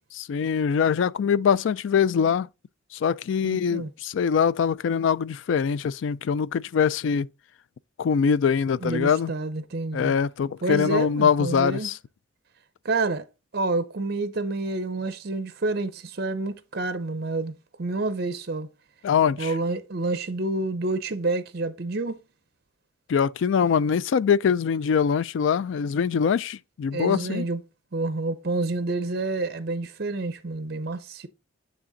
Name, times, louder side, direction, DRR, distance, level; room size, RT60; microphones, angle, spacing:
voice 1, 0.1-2.5 2.9-7.3 8.0-9.3 9.9-12.0 19.0-19.5 23.1-27.5, left 7 dB, 70° left, 0.3 m, -23 dB
voice 2, 3.4-3.9 8.8-10.1 10.6-11.9 12.8-13.2 13.5-18.7 19.4-22.2 26.9-27.6 27.9-31.3, right 3 dB, 55° right, 0.6 m, -28 dB
8.8 x 3.4 x 3.9 m
head